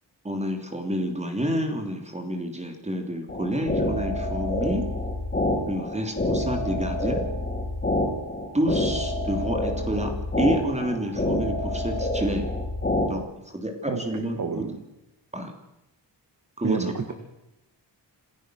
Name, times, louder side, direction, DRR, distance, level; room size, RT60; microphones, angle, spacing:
voice 1, 0.2-4.9 5.7-7.2 8.5-12.5 13.1-13.3 13.5-14.6 15.3-15.5 16.6-16.9, equal, 15° right, 4 dB, 3.0 m, -29 dB
sound 1, 3.3-13.1, left 1 dB, 20° left, 5.0 m, -27 dB
voice 2, 14.4-14.8 16.6-17.1, right 5 dB, 45° right, 5 dB, 2.3 m, -28 dB
27.0 x 16.0 x 6.4 m, 0.91 s
wide cardioid pair, 175°, 44 cm